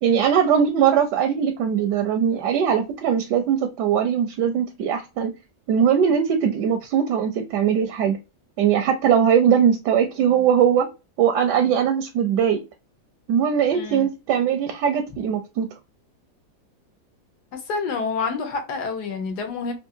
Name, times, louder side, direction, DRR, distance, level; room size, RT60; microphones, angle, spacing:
voice 1, 0.0-5.3 5.7-8.2 8.6-10.9 11.2-12.6 13.3-15.7, right 8 dB, 85° right, 1.2 m, -20 dB
voice 2, 13.7-14.1 17.5-19.7, left 5 dB, 75° left, 1.4 m, -28 dB
3.7 x 2.5 x 2.6 m
omnidirectional pair, 1.8 m